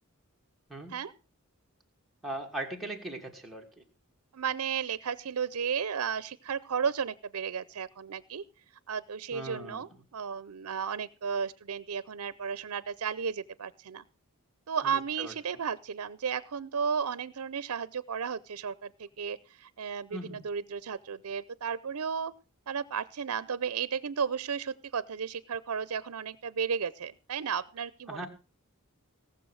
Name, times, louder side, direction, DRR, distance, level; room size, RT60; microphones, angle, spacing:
voice 1, 2.2-3.8 9.3-9.8 14.8-15.3 20.1-20.4 28.1-28.3, right 1 dB, ahead, -1 dB, 2.5 m, -39 dB
voice 2, 4.3-8.4 8.9-14.0 14.7-22.3 22.7-28.3, right 6 dB, 90° right, 18 dB, 0.6 m, -34 dB
18.0 x 6.9 x 6.3 m, 0.35 s
head